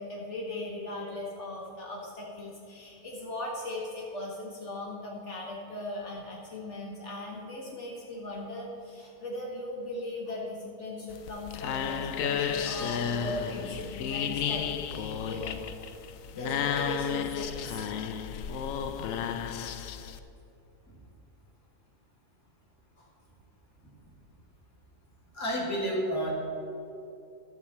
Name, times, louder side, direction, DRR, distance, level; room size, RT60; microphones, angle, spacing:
voice 1, 0.0-15.6 16.3-17.9 23.0-23.1, left 1 dB, 60° left, -3 dB, 1.6 m, -38 dB
sound 1, 11.1-20.2, left 7 dB, 80° left, 1.0 m, -32 dB
voice 2, 25.3-26.3, equal, 10° left, -5 dB, 2.2 m, -30 dB
13.0 x 7.2 x 4.3 m, 2.7 s
omnidirectional pair, 1.4 m